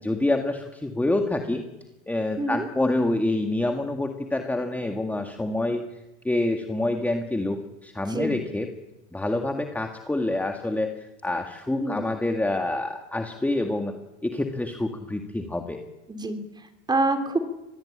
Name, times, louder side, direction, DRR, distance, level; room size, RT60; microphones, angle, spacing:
voice 1, 0.0-1.7 2.1-6.0 6.2-8.7 9.1-14.0 14.2-15.8, left 2 dB, 5° left, 4 dB, 1.9 m, -27 dB
voice 2, 16.1-17.4, right 2 dB, 10° right, 9 dB, 3.5 m, -27 dB
25.0 x 20.0 x 8.8 m, 0.99 s
supercardioid pair, 120°, 35 cm